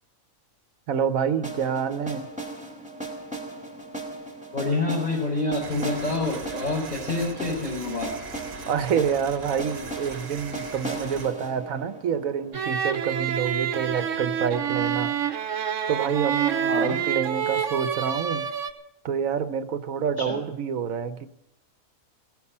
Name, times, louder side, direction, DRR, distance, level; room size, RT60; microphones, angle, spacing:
voice 1, 0.9-2.3 8.7-15.1 15.9-18.5 19.0-21.3, right 7 dB, 85° right, 12 dB, 1.3 m, -27 dB
sound 1, 1.4-13.3, right 2 dB, 5° right, 2.2 m, -37 dB
voice 2, 4.5-8.1 16.7-17.0 20.2-20.4, left 3 dB, 35° left, -6 dB, 4.3 m, -27 dB
sound 2, 5.6-11.3, right 5 dB, 50° right, 1.3 m, -41 dB
sound 3, 12.5-18.7, right 8 dB, 65° right, 1.2 m, -27 dB
16.5 x 9.6 x 8.7 m, 0.82 s
omnidirectional pair, 1.4 m